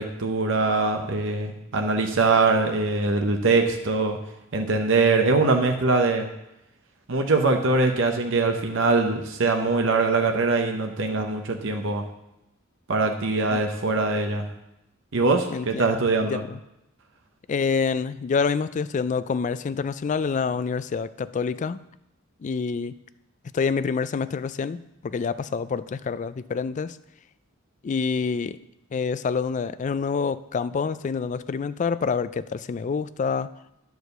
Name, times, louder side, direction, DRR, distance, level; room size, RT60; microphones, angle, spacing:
voice 1, 0.0-4.2 4.5-6.3 7.1-12.0 12.9-14.5 15.1-16.4, right 3 dB, 65° right, 4 dB, 0.9 m, -22 dB
voice 2, 15.5-15.9 16.2-16.6 17.5-21.8 22.4-22.9 23.5-27.0 27.8-28.6 28.9-33.5, left 5 dB, 35° left, 14 dB, 0.3 m, -27 dB
10.0 x 4.8 x 6.5 m, 0.88 s
head